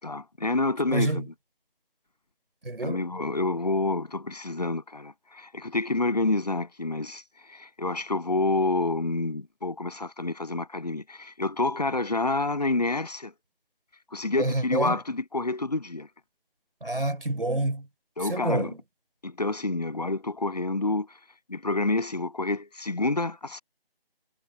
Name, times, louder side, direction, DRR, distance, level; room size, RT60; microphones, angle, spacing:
voice 1, 0.0-1.2 2.8-13.3 14.1-16.1 18.2-18.7 19.2-21.1 21.5-23.6, left 2 dB, 40° left, 7.2 m, -28 dB
voice 2, 0.9-1.2 2.6-3.0 14.4-15.0 16.8-17.9 18.3-18.8, right 2 dB, 65° right, 5.1 m, -27 dB
figure-of-eight pair, 175°, 30 cm